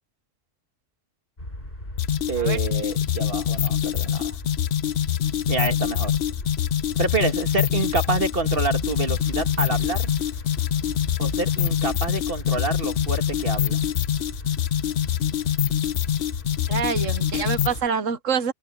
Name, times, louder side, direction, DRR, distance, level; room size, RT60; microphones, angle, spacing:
sound 1, 1.4-17.9, left 1 dB, 45° left, 8.1 m, -37 dB
sound 2, 2.0-17.8, left 10 dB, 60° left, 0.9 m, -25 dB
voice 1, 2.3-4.4 5.5-6.1 7.0-10.1 11.2-13.8, right 3 dB, 50° right, 2.2 m, -27 dB
voice 2, 16.7-18.5, right 6 dB, 85° right, 1.4 m, -26 dB
omnidirectional pair, 1.3 m